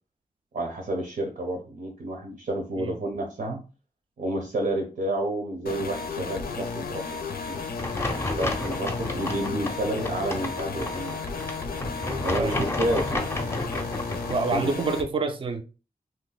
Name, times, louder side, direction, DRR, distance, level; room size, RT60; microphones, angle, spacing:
voice 1, 0.5-3.6 4.2-7.6 8.1-11.2 12.2-13.3 14.5-14.7, right 1 dB, 75° right, 0.7 m, -30 dB
sound 1, 5.7-15.0, left 4 dB, 85° left, 0.5 m, -33 dB
sound 2, 7.8-14.3, left 2 dB, 15° left, 0.5 m, -32 dB
voice 2, 14.3-15.6, right 4 dB, 35° right, 0.4 m, -27 dB
2.7 x 2.1 x 3.9 m
wide cardioid pair, 100°, 15 cm